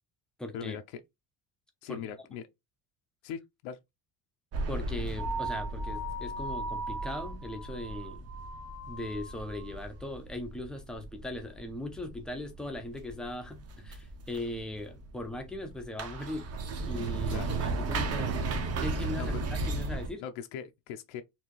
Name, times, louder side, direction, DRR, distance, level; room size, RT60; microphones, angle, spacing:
voice 1, 0.4-0.8 1.9-2.0 4.7-8.2 8.9-16.5 16.9-18.4 18.8-19.3 19.7-20.2, left 1 dB, ahead, 0.4 m, -39 dB
voice 2, 1.8-2.4 3.2-3.8 17.3-17.6 19.2-19.4 20.2-21.2, left 8 dB, 90° left, 0.7 m, -40 dB
sound 1, 4.5-20.1, right 3 dB, 35° right, 0.7 m, -36 dB
sound 2, 5.2-9.8, right 2 dB, 80° right, 1.8 m, -39 dB
4.3 x 2.7 x 2.9 m
cardioid pair, 170°, 45 cm